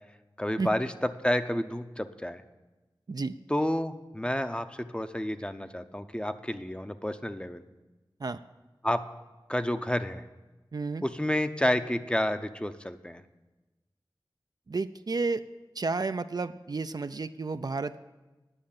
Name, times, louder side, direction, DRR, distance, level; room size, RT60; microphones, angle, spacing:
voice 1, 0.4-2.4 3.5-7.6 8.8-9.0 9.5-10.2 11.0-13.2, left 1 dB, 10° left, 9 dB, 0.6 m, -30 dB
voice 2, 10.7-11.0 14.7-15.4 15.8-18.0, right 3 dB, 55° right, 10 dB, 0.4 m, -31 dB
9.8 x 6.4 x 8.7 m, 1.1 s
wide cardioid pair, 55°, 8 cm